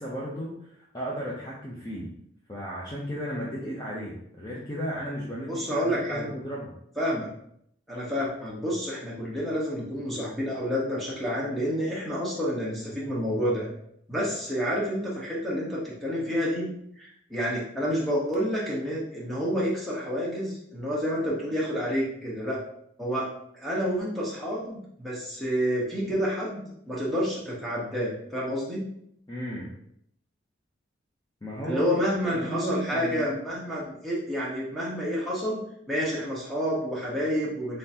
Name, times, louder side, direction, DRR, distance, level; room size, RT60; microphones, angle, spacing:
voice 1, 0.0-2.1 2.5-6.7 29.3-29.7 31.4-31.8 32.3-33.3, equal, 20° left, -6 dB, 0.6 m, -34 dB
voice 2, 5.5-6.3 7.0-7.3 7.9-13.7 14.1-16.7 17.0-22.6 23.0-23.3 23.5-28.9 31.6-37.8, equal, ahead, -6 dB, 1.1 m, -29 dB
3.8 x 3.7 x 2.8 m, 0.71 s
head